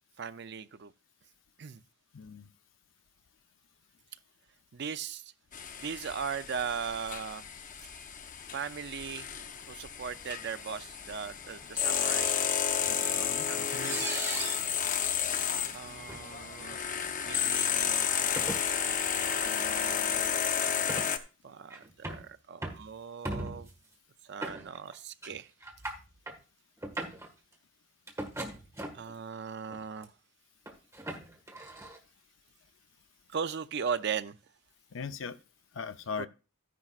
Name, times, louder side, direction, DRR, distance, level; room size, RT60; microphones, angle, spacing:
voice 1, 0.2-0.9 1.6-1.8 4.7-5.3 5.8-7.5 8.5-9.3 9.7-12.5 12.8-14.2 15.7-16.8 17.2-20.4 21.4-23.7 24.2-25.5 28.9-30.1 33.3-34.4 36.2-36.3, right 6 dB, 60° right, 0.5 m, -39 dB
voice 2, 2.1-2.5 12.9-14.1 34.9-35.4 35.7-36.3, left 5 dB, 75° left, 0.6 m, -40 dB
sound 1, 5.5-21.2, left 8 dB, 40° left, 0.8 m, -32 dB
sound 2, 12.6-12.7 13.8-14.7 15.5-15.7 16.1-16.2 17.2-17.5 18.2-18.6 19.8-19.9 20.6-21.1 21.7-22.3 22.6-22.9 23.2-23.7 24.4-24.9 25.2-25.3 25.6-26.4 26.8-27.3 28.1-29.1 29.7-30.1 30.7-32.0, right 2 dB, 15° right, 1.7 m, -38 dB
12.0 x 10.0 x 2.5 m
head